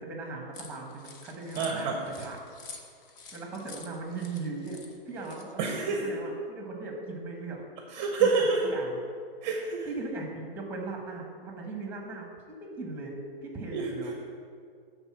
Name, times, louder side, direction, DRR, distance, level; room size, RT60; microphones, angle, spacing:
voice 1, 0.0-2.4 3.3-4.8 5.0-7.6 8.2-9.0 9.8-13.2 13.4-14.1, right 3 dB, 5° right, 1 dB, 1.1 m, -38 dB
sound 1, 0.5-5.8, left 4 dB, 20° left, 0.4 m, -48 dB
voice 2, 1.6-2.0 5.6-6.1 7.9-8.6 9.4-9.9 13.7-13.9, right 4 dB, 30° right, 1 dB, 0.8 m, -27 dB
9.9 x 4.0 x 6.1 m, 2.2 s
hypercardioid pair, 145°, 31 cm